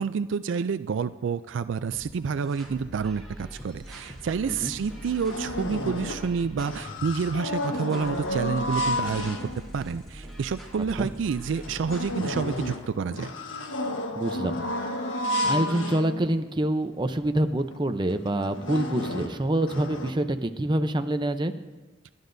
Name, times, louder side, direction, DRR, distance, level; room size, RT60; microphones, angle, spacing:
voice 1, 0.0-9.5 9.7-13.3, right 6 dB, 70° right, 13 dB, 0.3 m, -29 dB
sound 1, 1.9-12.8, equal, ahead, 3.5 m, -43 dB
sound 2, 4.3-4.4 4.7-6.4 6.6-9.8 10.4-10.5 10.9-11.0 11.4-16.6 17.2-17.3 17.6-17.8 18.3-20.1, left 1 dB, 80° left, 1.3 m, -31 dB
voice 2, 14.2-14.7 15.4-21.5, right 1 dB, 25° right, 8 dB, 0.7 m, -26 dB
29.0 x 11.5 x 2.7 m, 1.2 s
head